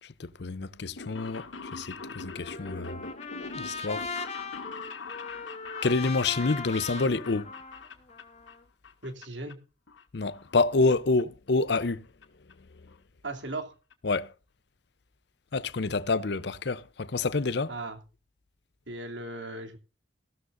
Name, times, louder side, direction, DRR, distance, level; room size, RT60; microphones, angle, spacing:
voice 1, 0.0-3.0 3.5-4.1 5.8-7.5 10.1-12.1 14.0-14.3 15.5-17.7, left 3 dB, 60° left, 0.6 m, -28 dB
sound 1, 0.8-8.6 8.8-9.5 9.9-10.9 11.2-11.3 12.2-12.3 12.5-12.6 12.9-13.0 13.2-13.5 13.9-14.0 14.2-14.3, left 4 dB, 80° left, 2.0 m, -43 dB
Trumpet, 2.4-8.6, left 4 dB, 35° left, 1.7 m, -39 dB
voice 2, 9.0-9.6 13.2-13.7 17.7-18.0 18.9-19.8, right 2 dB, 75° right, 2.8 m, -37 dB
15.5 x 12.5 x 2.6 m
head